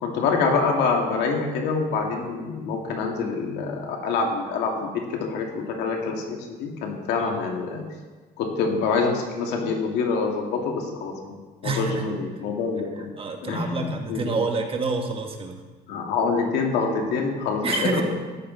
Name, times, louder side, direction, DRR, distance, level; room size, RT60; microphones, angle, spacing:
voice 1, 0.0-7.8 8.4-11.4 11.6-12.9 13.4-14.4 15.9-18.0, left 4 dB, 85° left, 1 dB, 2.1 m, -26 dB
voice 2, 11.6-12.1 13.2-15.6 17.6-18.0, right 4 dB, 35° right, 4 dB, 1.5 m, -28 dB
13.5 x 9.4 x 4.0 m, 1.4 s
cardioid pair, 110°, 17 cm